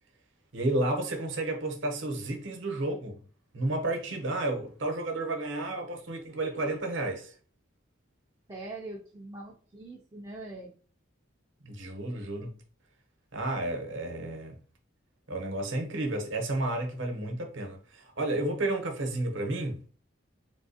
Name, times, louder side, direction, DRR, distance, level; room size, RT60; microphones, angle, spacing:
voice 1, 0.5-3.3 3.5-7.3 11.6-12.6 13.3-14.5 15.3-19.8, right 2 dB, 65° right, 0.8 m, -31 dB
voice 2, 8.5-10.7, right 2 dB, 20° right, 0.4 m, -42 dB
3.5 x 2.7 x 2.7 m
head